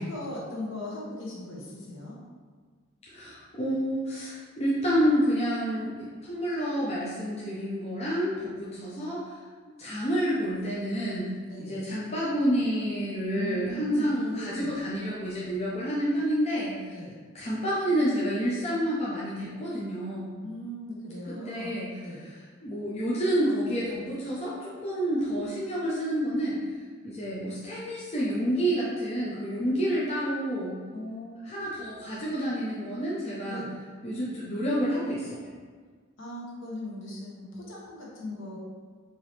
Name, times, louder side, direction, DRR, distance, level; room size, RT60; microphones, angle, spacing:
voice 1, 0.0-2.2 11.4-11.9 13.3-14.7 16.9-17.1 20.4-21.8 22.0-22.2 30.9-31.3 33.4-33.7 36.2-38.6, left 1 dB, 60° left, -4 dB, 1.0 m, -38 dB
voice 2, 3.1-9.3 9.8-11.3 11.6-16.7 17.3-20.4 21.3-21.9 22.6-26.6 27.0-30.8 31.4-33.6 34.0-35.4, equal, 30° left, -7 dB, 0.6 m, -29 dB
4.6 x 2.9 x 3.2 m, 1.5 s
head